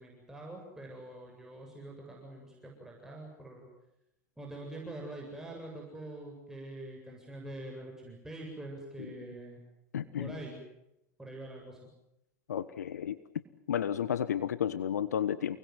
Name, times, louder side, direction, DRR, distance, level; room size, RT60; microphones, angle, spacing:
voice 1, 0.0-3.7 4.4-9.6 10.2-10.6 11.2-11.8, right 1 dB, 5° right, -1 dB, 7.9 m, -45 dB
voice 2, 9.9-10.3 12.5-13.2 13.7-15.6, left 9 dB, 80° left, 15 dB, 1.2 m, -32 dB
30.0 x 21.0 x 7.9 m, 0.86 s
hypercardioid pair, 95°, 9 cm